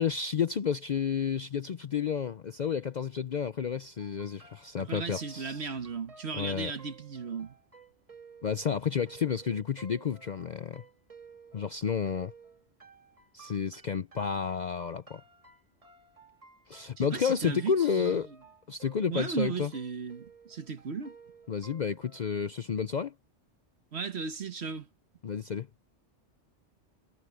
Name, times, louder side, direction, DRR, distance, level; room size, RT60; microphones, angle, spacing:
voice 1, 0.0-5.7 6.3-6.7 8.4-10.8 11.5-12.3 13.3-15.2 16.7-18.3 18.7-19.7 21.5-23.1 25.2-25.7, left 7 dB, 50° left, 0.6 m, -31 dB
sound 1, 4.0-22.3, right 5 dB, 30° right, 1.6 m, -55 dB
voice 2, 4.8-7.5 17.0-18.1 19.1-21.1 23.9-24.9, right 5 dB, 65° right, 1.4 m, -36 dB
omnidirectional pair, 1.2 m